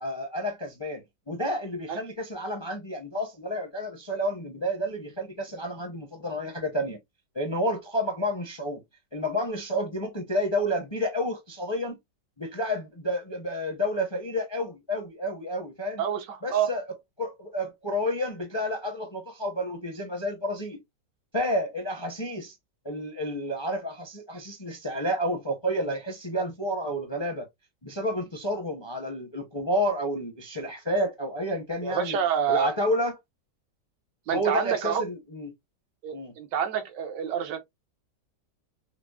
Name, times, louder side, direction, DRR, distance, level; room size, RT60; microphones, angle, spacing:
voice 1, 0.0-7.0 7.3-8.8 9.1-12.0 12.4-16.0 16.4-16.8 17.2-20.8 21.3-22.5 22.8-27.5 27.8-32.2 32.5-33.2 34.3-35.5 36.1-36.3, equal, 25° left, 0.5 m, -30 dB
voice 2, 16.0-16.7 31.8-32.7 34.3-35.0 36.0-37.6, right 8 dB, 80° right, 1.5 m, -27 dB
5.8 x 2.1 x 2.3 m
omnidirectional pair, 1.9 m